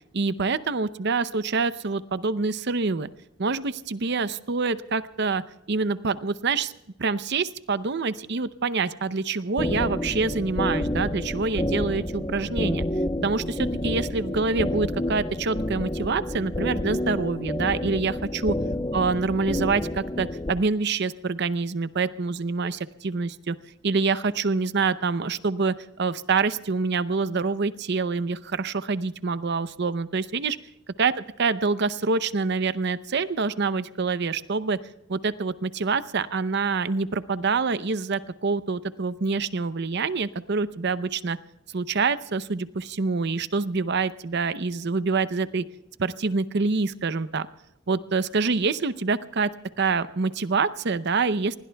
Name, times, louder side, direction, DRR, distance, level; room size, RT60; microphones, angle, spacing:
voice 1, 0.1-3.1 3.4-5.4 5.7-6.7 7.0-12.8 13.2-18.6 18.9-23.6 23.8-30.6 31.0-31.1 31.4-34.8 35.1-41.4 41.7-45.6 46.0-47.5 47.9-49.5 49.8-51.6, right 4 dB, 55° right, 14 dB, 0.7 m, -26 dB
sound 1, 9.6-20.5, left 1 dB, 25° left, 0.9 m, -29 dB
28.5 x 20.5 x 2.3 m, 0.87 s
head